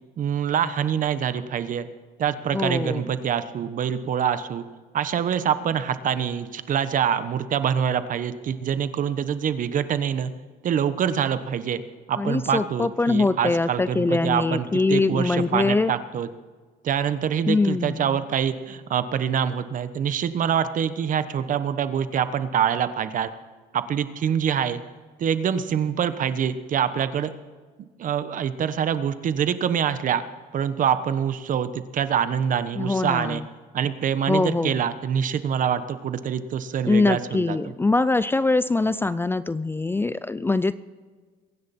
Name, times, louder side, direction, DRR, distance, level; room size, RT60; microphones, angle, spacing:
voice 1, 0.2-1.9 2.2-4.6 4.9-10.3 10.6-11.8 12.1-16.3 16.8-23.3 23.7-24.8 25.2-27.3 28.0-30.2 30.5-33.4 33.7-37.6, right 8 dB, 50° right, 12 dB, 1.1 m, -25 dB
voice 2, 2.5-3.0 12.2-16.0 17.5-18.2 32.8-33.5 34.3-34.8 36.8-40.8, left 3 dB, 15° left, 15 dB, 0.4 m, -23 dB
23.0 x 10.5 x 4.3 m, 1.4 s
cardioid pair, 110°, 17 cm